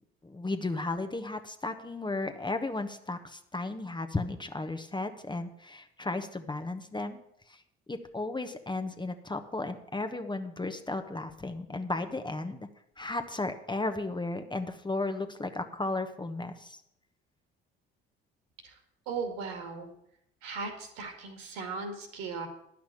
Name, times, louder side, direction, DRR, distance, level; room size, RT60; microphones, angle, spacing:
voice 1, 0.2-7.2 7.5-7.6 7.9-12.7 13.0-16.8, left 2 dB, 15° left, 7 dB, 1.1 m, -34 dB
voice 2, 19.1-19.9 20.4-22.5, right 4 dB, 75° right, 5 dB, 2.1 m, -37 dB
10.5 x 6.0 x 8.7 m, 0.74 s
hypercardioid pair, 55°, 30 cm